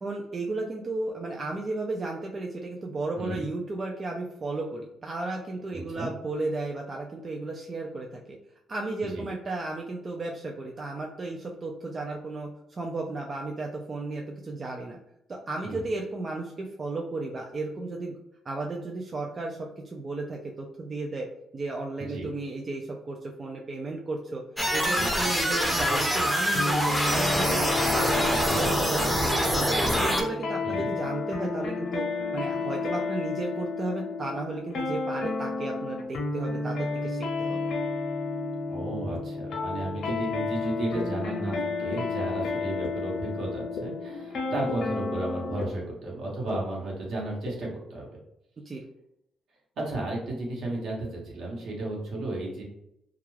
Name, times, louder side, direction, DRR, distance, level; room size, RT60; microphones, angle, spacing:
voice 1, 0.0-8.2 8.7-15.0 15.3-18.1 18.5-21.3 21.5-24.4 24.7-27.6 27.9-29.4 29.8-32.1 32.3-37.7 48.7-48.8, right 2 dB, 35° right, 0 dB, 0.3 m, -34 dB
voice 2, 3.2-3.5 5.7-6.1 9.1-9.2 15.6-15.8 22.0-22.3 30.6-30.9 38.7-48.1 49.8-52.6, right 2 dB, 70° right, -3 dB, 1.0 m, -33 dB
sound 1, 24.6-30.2, equal, 5° right, 0.6 m, -25 dB
sound 2, 26.5-45.7, left 3 dB, 70° left, 0.7 m, -31 dB
sound 3, 39.1-39.2 40.1-40.2 41.0-41.1 41.9-42.0 42.8-42.9 43.8-43.9 44.7-44.8 45.6-45.7 46.5-46.6 47.5-47.6, left 5 dB, 85° left, 0.3 m, -35 dB
2.3 x 2.3 x 3.2 m, 0.82 s
cardioid pair, 90°, 0 cm